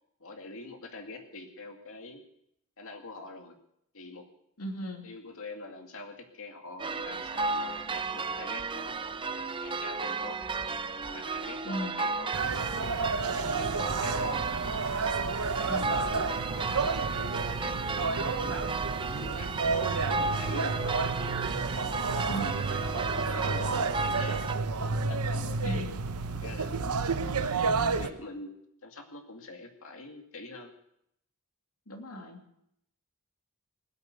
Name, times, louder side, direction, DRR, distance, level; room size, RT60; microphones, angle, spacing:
voice 1, 0.2-2.2 2.8-3.6 3.9-4.3 5.0-9.0 9.6-10.4 11.0-13.0 13.2-14.4 15.0-15.3 15.6-16.1 16.5-18.6 19.0-19.5 19.8-20.9 21.7-24.5 24.8-25.9 26.3-26.7 27.4-30.7, left 3 dB, 65° left, 4 dB, 2.3 m, -45 dB
voice 2, 4.6-5.0 11.6-12.0 15.6-16.0 22.3-22.6 25.6-26.0 31.9-32.4, right 1 dB, 90° left, 3 dB, 2.9 m, -37 dB
sound 1, 6.8-24.5, right 4 dB, 25° right, 0.7 m, -34 dB
sound 2, 12.3-28.1, right 4 dB, 90° right, 1.0 m, -31 dB
19.5 x 8.6 x 8.2 m, 0.76 s
head